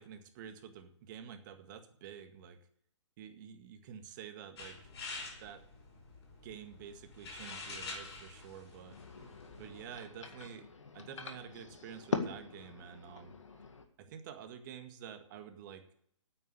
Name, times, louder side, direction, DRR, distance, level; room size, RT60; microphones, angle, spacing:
voice 1, 0.0-2.6 3.2-4.9 5.4-5.6 6.4-8.9 9.6-10.7 10.9-13.3 14.0-15.9, right 8 dB, 40° right, 7 dB, 1.8 m, -49 dB
sound 1, 4.6-10.0, left 3 dB, 60° left, 5.4 m, -47 dB
sound 2, 8.8-13.8, left 4 dB, 80° left, 1.9 m, -42 dB
9.4 x 8.9 x 8.3 m, 0.68 s
hypercardioid pair, 130°, 16 cm